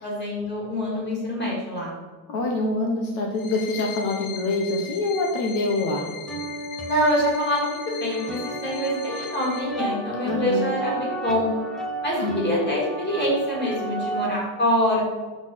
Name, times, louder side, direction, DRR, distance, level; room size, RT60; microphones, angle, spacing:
voice 1, 0.0-1.9 6.9-11.5 12.0-15.0, equal, 20° left, -4 dB, 2.7 m, -25 dB
voice 2, 2.3-6.1 10.2-10.7 12.2-12.5, left 2 dB, 65° left, 1 dB, 1.3 m, -25 dB
sound 1, 3.3-9.6, left 8 dB, 90° left, 1.4 m, -39 dB
sound 2, 6.3-14.3, right 2 dB, ahead, 0.6 m, -33 dB
6.5 x 5.8 x 5.6 m, 1.4 s
cardioid pair, 175°, 49 cm